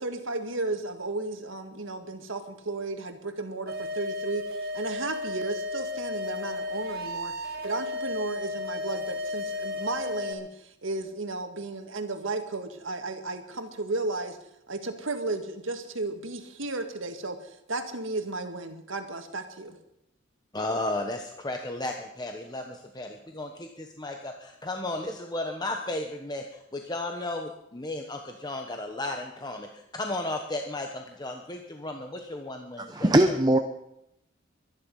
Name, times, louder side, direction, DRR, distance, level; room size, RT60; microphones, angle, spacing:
voice 1, 0.0-7.3 7.6-14.4 14.7-19.8, right 2 dB, 85° right, 6 dB, 1.9 m, -34 dB
sound 1, 3.7-10.3, left 2 dB, 50° right, 2.2 m, -33 dB
voice 2, 20.5-33.4, left 2 dB, 20° left, 3 dB, 1.1 m, -34 dB
voice 3, 32.9-33.6, right 1 dB, 20° right, 6 dB, 0.8 m, -20 dB
23.0 x 10.5 x 5.5 m, 0.80 s
head